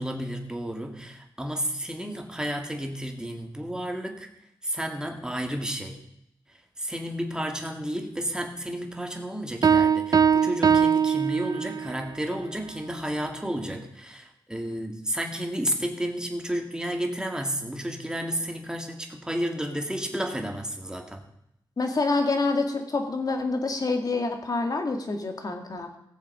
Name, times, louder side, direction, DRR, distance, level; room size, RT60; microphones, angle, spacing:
voice 1, 0.0-4.3 4.6-6.0 6.8-21.2, right 1 dB, 10° right, 3 dB, 2.1 m, -32 dB
Piano, 9.6-12.0, right 7 dB, 45° right, 0.4 m, -21 dB
voice 2, 21.8-26.0, left 3 dB, 50° left, 4 dB, 2.1 m, -27 dB
17.5 x 7.3 x 5.6 m, 0.79 s
wide cardioid pair, 85°, 8 cm